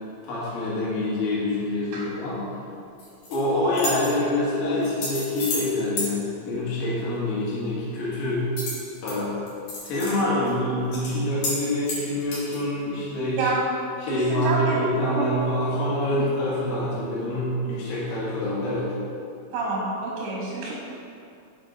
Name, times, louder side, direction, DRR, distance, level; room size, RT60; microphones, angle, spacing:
voice 1, 0.2-2.4 3.3-8.5 9.0-9.3 9.8-13.5 14.0-18.9, left 1 dB, 85° left, -7 dB, 4.0 m, -26 dB
sound 1, 3.0-3.4 3.7-4.1 4.8-5.7 6.0-6.1 8.6-9.1 9.5-10.1 10.5-10.6 10.9-11.1 11.4-11.6 11.9-12.6, left 2 dB, 60° left, 2.1 m, -31 dB
voice 2, 14.1-14.8 15.2-15.3 16.1-16.2 19.5-20.7, right 3 dB, 80° right, -4 dB, 2.3 m, -27 dB
7.7 x 4.8 x 3.7 m, 2.5 s
omnidirectional pair, 5.5 m